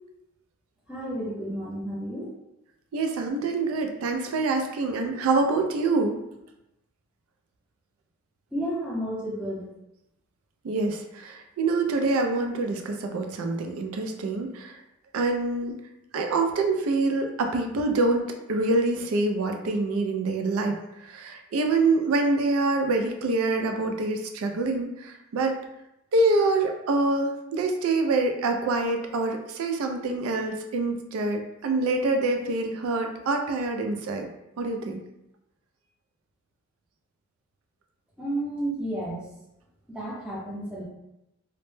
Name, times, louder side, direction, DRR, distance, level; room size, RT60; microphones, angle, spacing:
voice 1, 0.9-2.3 8.5-9.6 38.2-39.2 39.9-40.8, right 1 dB, 5° right, -6 dB, 0.5 m, -31 dB
voice 2, 2.9-6.2 10.6-14.7 15.1-15.7 16.1-20.8 21.0-25.6 26.1-34.3 34.6-35.0, right 3 dB, 80° right, 4 dB, 0.3 m, -26 dB
2.1 x 2.0 x 3.0 m, 0.87 s
head